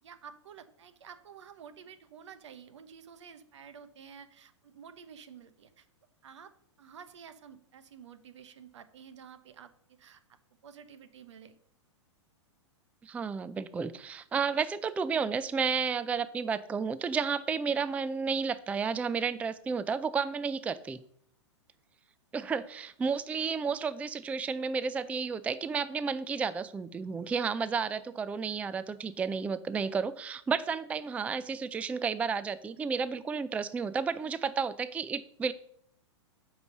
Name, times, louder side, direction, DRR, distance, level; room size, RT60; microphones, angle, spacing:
voice 1, 0.0-5.9 6.2-6.5 6.8-11.6 23.3-23.8, right 7 dB, 70° right, 11 dB, 1.0 m, -51 dB
voice 2, 13.0-21.0 22.3-35.5, right 5 dB, 10° right, 15 dB, 0.3 m, -32 dB
9.1 x 4.8 x 6.6 m, 0.66 s
hypercardioid pair, 110°, 16 cm